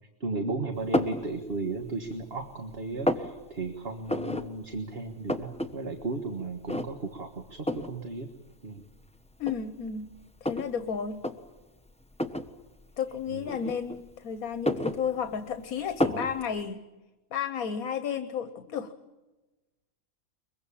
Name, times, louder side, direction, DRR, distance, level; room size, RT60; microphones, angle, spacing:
voice 1, 0.2-8.3 8.6-8.8 13.3-13.5 16.0-16.3, right 3 dB, 45° right, 6 dB, 1.7 m, -35 dB
sound 1, 0.9-1.2 1.8-2.4 2.7-3.3 4.1-4.5 4.8-4.9 5.1-5.7 6.0-6.1 6.7-7.1 7.7-7.9 8.8-8.9 9.4-10.7 11.1-11.3 12.1-12.5 13.5-14.1 14.5-15.5 16.0-16.3, left 1 dB, 5° left, 1.0 m, -29 dB
voice 2, 9.4-10.1 10.4-11.2 13.0-16.8 17.3-18.9, left 7 dB, 80° left, 9 dB, 1.5 m, -32 dB
23.0 x 23.0 x 8.6 m, 1.1 s
omnidirectional pair, 1.5 m